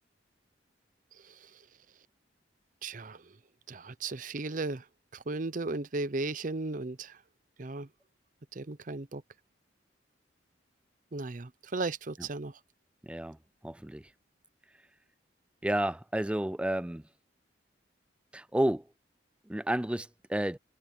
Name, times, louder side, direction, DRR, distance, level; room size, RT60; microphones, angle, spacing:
voice 1, 2.8-3.2 3.7-4.8 5.1-7.2 7.6-7.9 8.5-9.2 11.1-12.5, right 3 dB, 45° right, 0.7 m, -35 dB
voice 2, 13.0-13.4 13.6-14.0 15.6-17.0 18.3-18.8 19.5-20.6, right 1 dB, 5° right, 0.4 m, -31 dB
head